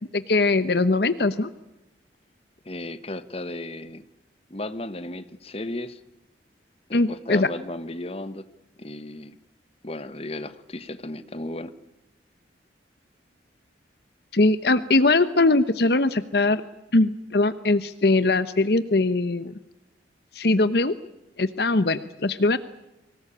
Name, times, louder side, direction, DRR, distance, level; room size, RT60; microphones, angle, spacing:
voice 1, 0.1-1.5 6.9-7.5 14.3-16.6 16.9-19.5 20.3-20.9 21.4-22.6, left 2 dB, 60° left, 13 dB, 0.9 m, -21 dB
voice 2, 2.6-4.0 4.5-6.0 6.9-8.4 8.8-9.4 9.8-11.7, left 1 dB, 35° left, 12 dB, 1.3 m, -34 dB
25.0 x 19.0 x 8.6 m, 0.96 s
head